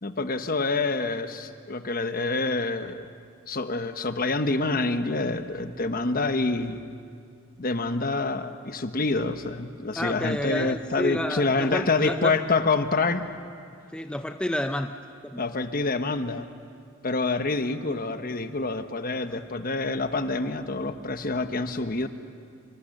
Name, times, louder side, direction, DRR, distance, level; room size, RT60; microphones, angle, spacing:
voice 1, 0.0-3.1 3.5-6.8 7.6-13.2 15.4-16.5 17.0-22.1, left 3 dB, 45° left, 9 dB, 1.1 m, -27 dB
voice 2, 9.9-12.3 13.9-14.9 15.2-15.4, left 1 dB, 5° left, 6 dB, 0.5 m, -30 dB
26.0 x 25.5 x 6.6 m, 2.3 s
head